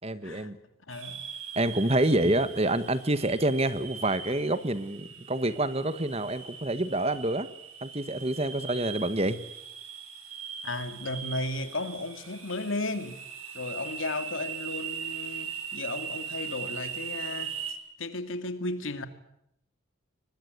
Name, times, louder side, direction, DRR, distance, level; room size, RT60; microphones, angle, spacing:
voice 1, 0.0-0.6 1.5-7.5 7.8-9.4, right 1 dB, 30° right, 1.3 m, -27 dB
voice 2, 0.9-1.3 10.6-13.2 13.5-19.1, left 2 dB, 75° left, 2.4 m, -34 dB
sound 1, 0.9-17.7, right 7 dB, 90° right, 5.9 m, -40 dB
24.0 x 20.5 x 9.5 m
head